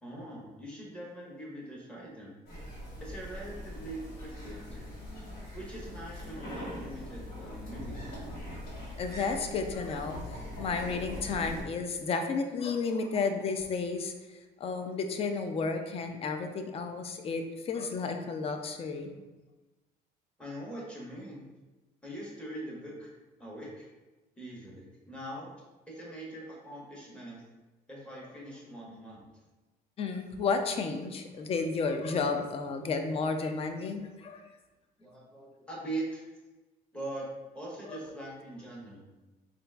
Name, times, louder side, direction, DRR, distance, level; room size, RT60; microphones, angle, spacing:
voice 1, 0.0-2.4 3.0-4.8 5.5-8.4 20.4-21.5 22.0-23.1 23.4-23.9 24.4-25.5 25.9-27.4 27.9-29.3 31.4-31.6 35.0-36.2 36.9-37.3 37.5-39.1, right 1 dB, 5° left, -5 dB, 1.1 m, -42 dB
sound 1, 2.5-11.6, left 1 dB, 65° left, 1.4 m, -42 dB
voice 2, 9.0-14.1 14.6-19.1 30.0-34.4 37.9-38.0, left 4 dB, 35° left, 6 dB, 0.4 m, -32 dB
3.8 x 2.5 x 2.2 m, 1.1 s
cardioid pair, 110°, 17 cm